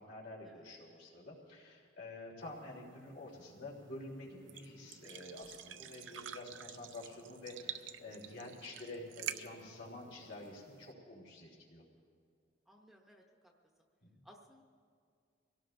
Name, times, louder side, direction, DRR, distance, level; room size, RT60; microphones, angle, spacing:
voice 1, 0.0-11.8 14.0-14.1, left 2 dB, 75° left, -3 dB, 3.5 m, -49 dB
sound 1, 2.4-10.9, right 9 dB, 80° right, 0.6 m, -49 dB
voice 2, 12.7-13.5 14.2-14.6, equal, ahead, 0 dB, 0.8 m, -60 dB
25.5 x 17.5 x 2.6 m, 2.2 s
head